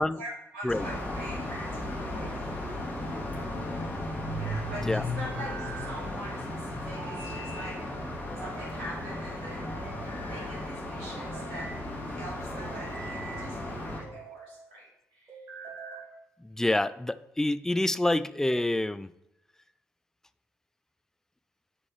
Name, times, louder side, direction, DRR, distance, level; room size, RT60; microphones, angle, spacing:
voice 1, 0.0-2.3 4.4-7.9 8.4-11.7 12.0-15.4, right 1 dB, 70° right, -5 dB, 2.0 m, -44 dB
sound 1, 0.7-14.0, left 1 dB, 25° left, 2.2 m, -35 dB
sound 2, 1.5-2.1 3.5-4.3 5.1-5.9 7.0-7.8 8.4-9.0 9.6-10.5 11.1-11.8 12.5-13.5 14.0-14.5 15.3-16.1, right 3 dB, 45° right, 2.4 m, -45 dB
voice 2, 16.6-19.1, left 1 dB, 5° left, 14 dB, 0.3 m, -27 dB
8.9 x 4.3 x 3.2 m, 0.84 s
figure-of-eight pair, 40°, 7 cm